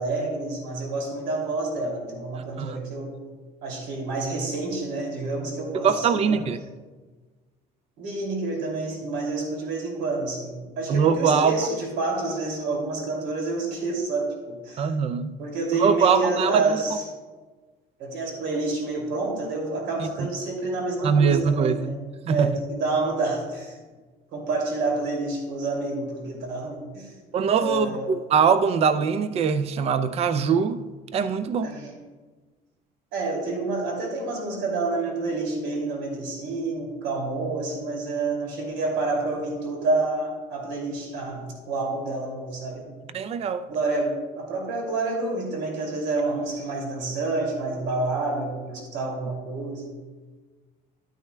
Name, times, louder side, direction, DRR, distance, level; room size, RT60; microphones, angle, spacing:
voice 1, 0.0-3.2 3.6-6.4 8.0-14.9 15.4-17.0 18.0-22.0 22.3-23.8 24.3-27.1 27.6-28.2 31.6-32.0 33.1-42.9 43.7-49.9, right 3 dB, 85° right, 2.7 m, -28 dB
voice 2, 5.8-6.6 10.9-11.6 14.8-15.3 15.8-16.6 20.0-20.1 21.0-21.9 22.3-22.6 27.3-30.8 31.1-31.7 43.1-43.6, right 6 dB, 35° right, 0.4 m, -22 dB
11.5 x 9.1 x 2.2 m
cardioid pair, 155°, 18 cm